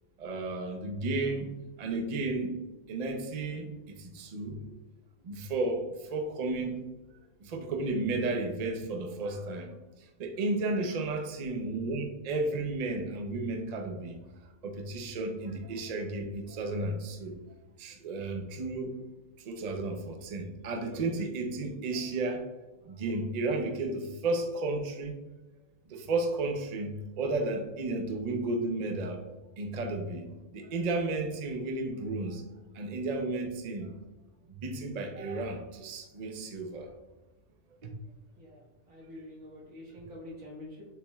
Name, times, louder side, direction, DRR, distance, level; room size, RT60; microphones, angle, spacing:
voice 1, 0.2-2.6 2.9-4.7 5.2-6.8 7.4-14.2 14.6-17.4 17.8-19.0 19.4-22.5 22.8-25.2 25.9-29.2 29.6-32.5 32.7-33.9 34.5-36.9 37.8-37.9 39.1-39.3, right 2 dB, 50° right, 4 dB, 0.5 m, -33 dB
voice 2, 38.4-40.9, left 1 dB, 85° right, -5 dB, 1.9 m, -47 dB
6.7 x 3.0 x 2.3 m, 1.1 s
omnidirectional pair, 1.3 m